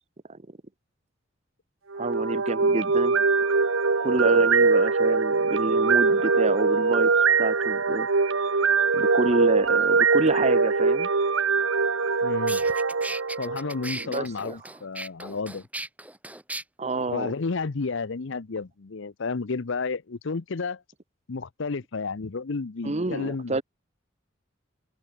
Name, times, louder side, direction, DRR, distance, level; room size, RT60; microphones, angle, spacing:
voice 1, 1.9-3.2 4.0-8.1 8.9-11.1 14.0-14.3 16.8-17.3 22.8-23.6, right 2 dB, 35° right, 1.0 m, -28 dB
sound 1, 1.9-14.0, right 4 dB, 80° right, 1.2 m, -22 dB
sound 2, 12.0-12.1 12.5-16.6, right 2 dB, 10° right, 6.5 m, -37 dB
voice 2, 12.2-12.6 13.4-15.6 17.1-20.8 21.3-23.6, left 4 dB, 65° left, 0.7 m, -31 dB
head